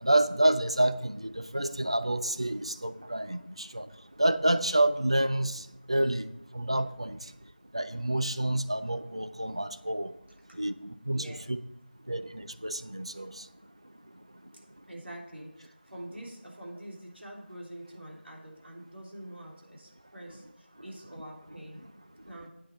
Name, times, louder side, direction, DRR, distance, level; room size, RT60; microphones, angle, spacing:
voice 1, 0.0-3.9 4.2-5.6 5.9-6.2 6.5-7.2 7.7-10.1 10.6-11.6 12.1-12.2 12.6-13.3, right 1 dB, 30° right, 11 dB, 0.4 m, -28 dB
voice 2, 11.1-11.5 14.8-21.8 22.2-22.5, right 1 dB, 80° right, -2 dB, 3.4 m, -45 dB
8.4 x 7.8 x 5.1 m, 0.86 s
figure-of-eight pair, 175°, 6 cm